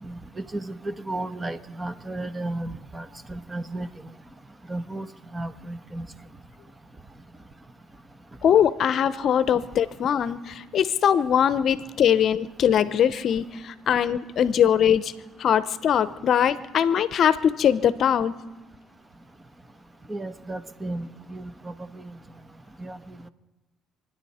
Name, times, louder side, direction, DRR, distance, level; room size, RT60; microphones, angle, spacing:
voice 1, 0.0-3.9 4.7-5.1 5.3-6.1 20.1-22.1 22.8-23.3, right 2 dB, 20° right, 11 dB, 1.2 m, -34 dB
voice 2, 8.4-15.1 15.4-18.3, left 9 dB, 60° left, 15 dB, 0.7 m, -21 dB
28.5 x 9.9 x 4.3 m, 1.2 s
supercardioid pair, 65°, 0 cm